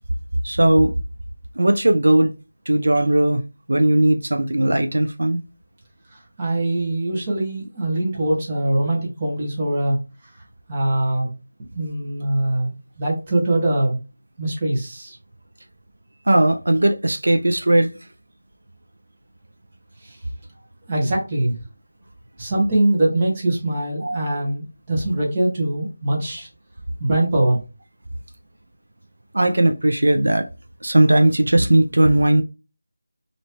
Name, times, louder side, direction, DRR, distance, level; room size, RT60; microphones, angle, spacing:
voice 1, 0.4-0.9 1.6-2.3 2.7-3.4 3.7-5.4 16.3-17.9 24.0-24.2 29.3-30.5 30.8-32.4, right 1 dB, 75° right, 0.5 m, -17 dB
voice 2, 6.4-10.0 10.7-11.3 11.7-12.7 13.0-14.0 14.4-15.2 20.0-20.2 20.9-21.6 22.4-26.5 27.0-27.6, right 1 dB, 20° right, 1.0 m, -22 dB
3.0 x 2.6 x 3.2 m
figure-of-eight pair, 170°, 0 cm